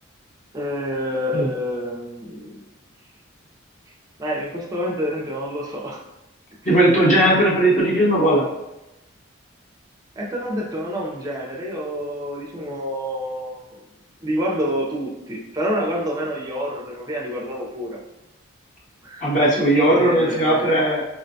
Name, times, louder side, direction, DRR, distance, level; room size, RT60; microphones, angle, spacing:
voice 1, 0.5-2.6 4.2-6.0 10.2-13.8 14.2-18.0 19.0-19.4 20.0-20.7, equal, 15° right, -2 dB, 0.4 m, -27 dB
voice 2, 6.7-8.5 19.2-21.0, right 1 dB, 35° left, -5 dB, 0.7 m, -17 dB
4.5 x 2.1 x 2.6 m, 0.94 s
head